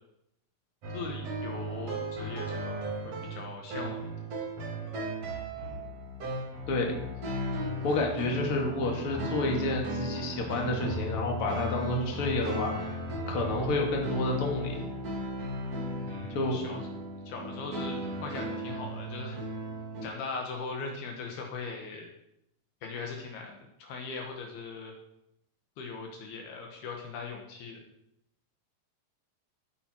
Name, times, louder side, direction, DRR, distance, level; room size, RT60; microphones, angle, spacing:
sound 1, 0.8-20.0, equal, 40° right, 3.2 m, -36 dB
voice 1, 0.9-4.1 16.1-16.8 17.3-19.4 20.0-22.1 22.8-24.9 25.8-27.8, left 4 dB, 70° left, 2 dB, 3.3 m, -40 dB
voice 2, 7.8-12.7 13.3-14.9 16.3-16.6, left 2 dB, 35° left, 1 dB, 2.8 m, -29 dB
18.0 x 9.6 x 4.6 m, 0.81 s
omnidirectional pair, 4.9 m